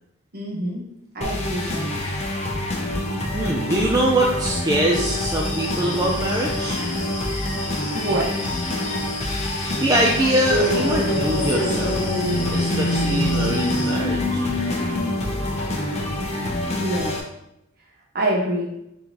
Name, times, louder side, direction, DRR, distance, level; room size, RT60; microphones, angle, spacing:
voice 1, 0.3-0.8 1.1-1.9 7.9-8.5 16.8-17.2 18.1-18.7, right 1 dB, 45° right, -3 dB, 1.1 m, -25 dB
sound 1, 1.2-17.2, left 1 dB, 30° left, 0.6 m, -27 dB
voice 2, 3.3-6.8 9.8-12.0 12.5-14.4, right 1 dB, 20° right, -2 dB, 0.4 m, -23 dB
sound 2, 4.9-13.9, left 2 dB, 55° left, 1.3 m, -34 dB
sound 3, 10.5-17.1, left 1 dB, 80° left, 0.7 m, -26 dB
4.4 x 3.7 x 2.9 m, 0.85 s
head